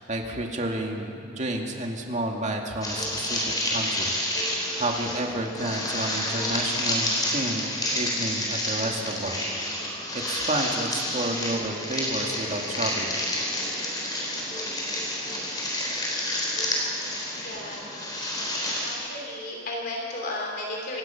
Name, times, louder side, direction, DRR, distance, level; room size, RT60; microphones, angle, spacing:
voice 1, 0.0-9.4 10.1-13.2, right 1 dB, 35° right, 1 dB, 2.2 m, -31 dB
sound 1, 2.8-19.0, left 1 dB, 20° left, 4.1 m, -29 dB
voice 2, 17.3-17.9 18.8-21.0, left 2 dB, 50° left, -1 dB, 3.1 m, -34 dB
27.0 x 16.0 x 5.9 m, 2.4 s
head